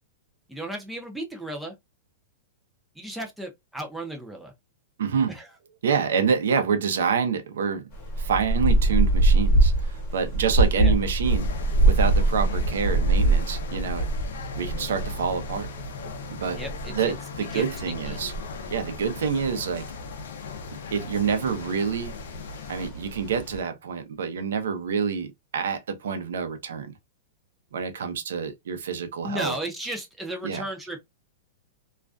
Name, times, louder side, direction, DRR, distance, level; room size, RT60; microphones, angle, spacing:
voice 1, 0.5-1.7 3.0-4.5 5.3-5.5 10.8-10.9 16.5-17.1 17.5-17.6 18.1-18.2 29.2-31.0, right 1 dB, 5° right, 0.5 m, -34 dB
voice 2, 5.0-5.4 5.8-7.8 8.2-11.5 11.8-14.1 14.6-15.7 16.3-16.6 16.9-18.3 18.7-19.9 20.9-22.1 22.7-27.0 27.7-29.5 30.4-30.6, right 6 dB, 80° right, 0.6 m, -27 dB
sound 1, 7.9-23.6, right 2 dB, 35° left, 1.0 m, -25 dB
sound 2, 11.2-22.9, left 7 dB, 75° left, 0.5 m, -39 dB
2.4 x 2.2 x 2.4 m
supercardioid pair, 170°, 0 cm